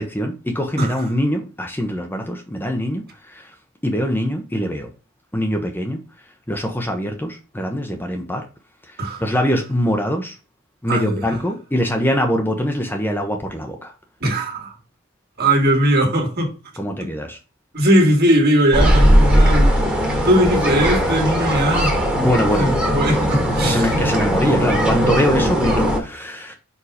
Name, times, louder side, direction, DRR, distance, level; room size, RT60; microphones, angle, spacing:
voice 1, 0.0-3.5 3.8-4.9 5.3-6.0 6.5-8.5 9.2-10.3 10.8-13.9 16.8-17.4 22.2-22.7 23.6-26.5, equal, 10° left, 0.8 m, -23 dB
voice 2, 10.9-11.4 14.2-14.7 15.4-16.5 17.0-17.1 17.7-22.0 22.6-23.9, right 1 dB, 50° right, 2.1 m, -19 dB
sound 1, 18.7-26.0, equal, 5° right, 1.4 m, -18 dB
4.8 x 4.7 x 4.9 m
head